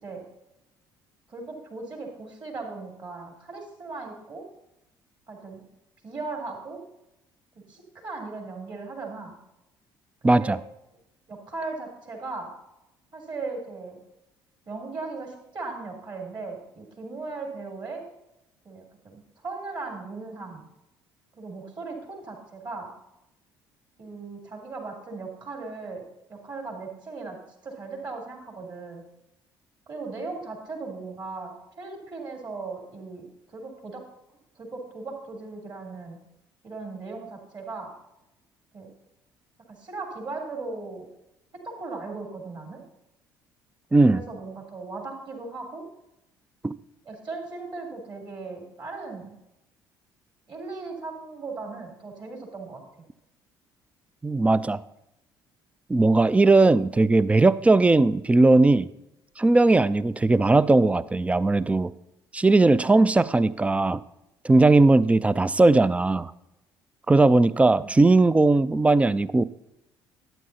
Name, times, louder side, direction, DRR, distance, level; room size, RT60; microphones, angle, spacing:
voice 1, 1.3-4.4 5.3-5.6 6.0-6.8 7.7-9.4 10.2-10.6 11.3-12.5 13.1-14.0 14.7-18.0 18.6-20.7 21.3-22.9 24.0-26.0 26.3-27.4 27.6-29.0 29.9-31.5 31.8-33.2 33.5-34.0 34.5-36.2 36.6-37.9 38.7-38.9 39.8-41.0 41.6-42.8 44.1-45.8 47.0-49.4 50.5-52.8 67.8-67.9, right 3 dB, 40° right, 1 dB, 3.3 m, -37 dB
voice 2, 10.2-10.6 43.9-44.2 46.6-46.7 54.2-54.8 55.9-58.9 59.4-61.9 62.3-64.0 64.4-66.3 67.1-69.4, right 2 dB, 10° right, 18 dB, 0.3 m, -19 dB
13.5 x 9.1 x 2.8 m, 0.87 s
figure-of-eight pair, 50°, 12 cm